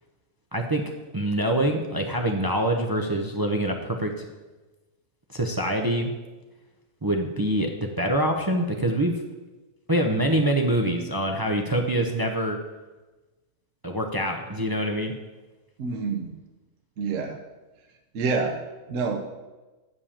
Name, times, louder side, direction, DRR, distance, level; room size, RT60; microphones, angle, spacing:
voice 1, 0.5-0.8 1.1-4.3 5.3-6.1 7.0-9.2 9.9-12.6 13.8-15.1, right 1 dB, 25° right, 3 dB, 0.5 m, -25 dB
voice 2, 15.8-16.3 17.0-17.4 18.1-18.6 18.9-19.2, right 4 dB, 65° right, 2 dB, 1.1 m, -27 dB
8.4 x 5.5 x 7.2 m, 1.2 s
omnidirectional pair, 1.6 m